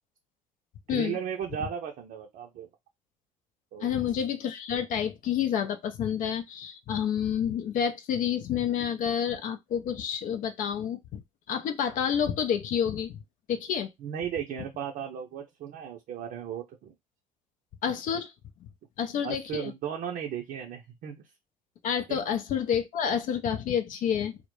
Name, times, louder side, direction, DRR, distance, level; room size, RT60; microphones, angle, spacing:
voice 1, 0.9-2.7 3.7-3.9 14.0-16.9 19.2-21.3 22.1-22.2, right 8 dB, 55° right, 0.5 m, -36 dB
voice 2, 3.8-11.2 11.5-13.2 13.5-13.9 17.8-18.3 19.0-19.7 21.8-24.4, left 8 dB, 55° left, 0.5 m, -29 dB
2.1 x 2.0 x 3.0 m
hypercardioid pair, 65°, 17 cm